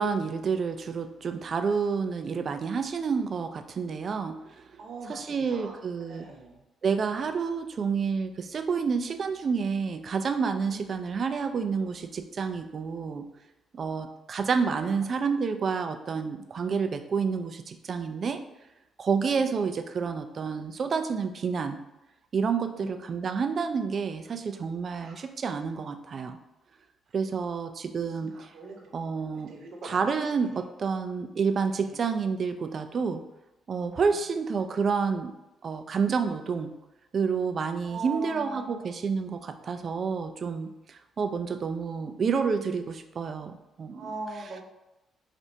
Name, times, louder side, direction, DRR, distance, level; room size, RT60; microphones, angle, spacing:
voice 1, 0.0-4.8 5.1-6.3 6.8-13.3 13.7-18.4 19.0-21.8 22.3-26.4 27.1-28.5 28.9-29.5 29.8-33.2 33.7-35.3 35.6-36.7 37.1-44.1 44.4-44.5, right 5 dB, 45° right, 8 dB, 0.3 m, -29 dB
voice 2, 4.8-6.6 10.7-10.9 14.7-15.0 19.3-19.5 22.7-23.3 25.0-25.2 28.3-28.7 29.2-30.1 30.5-30.6 31.8-32.0 37.8-38.8 43.9-44.6, right 2 dB, 65° right, 0 dB, 0.9 m, -41 dB
4.4 x 2.5 x 2.7 m, 0.97 s
cardioid pair, 90°, 0 cm